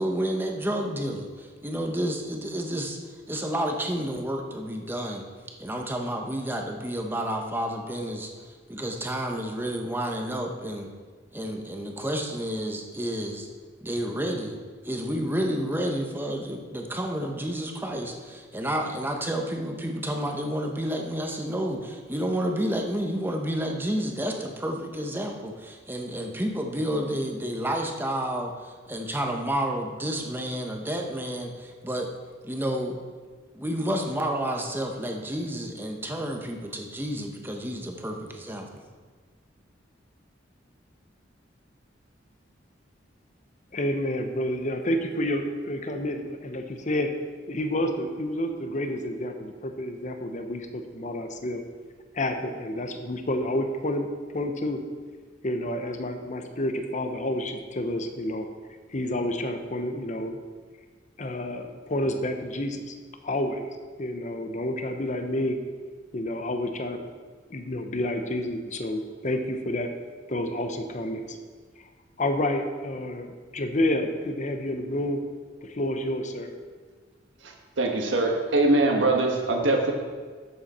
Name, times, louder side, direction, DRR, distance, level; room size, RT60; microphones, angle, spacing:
voice 1, 0.0-3.0 3.3-5.2 5.6-10.9 11.3-13.5 13.8-14.6 14.8-32.1 32.4-33.0 33.5-38.8, equal, 10° right, 2 dB, 1.0 m, -30 dB
voice 2, 43.7-47.1 47.5-51.6 52.1-54.1 54.3-54.8 55.4-58.5 58.9-60.4 61.2-63.0 63.2-63.7 64.0-65.6 66.1-67.0 67.5-69.9 70.3-71.4 72.2-75.2 75.6-76.5, left 1 dB, 40° left, 6 dB, 0.9 m, -29 dB
voice 3, 77.8-79.9, right 2 dB, 75° right, 2 dB, 1.4 m, -22 dB
12.0 x 7.7 x 4.3 m, 1.5 s
head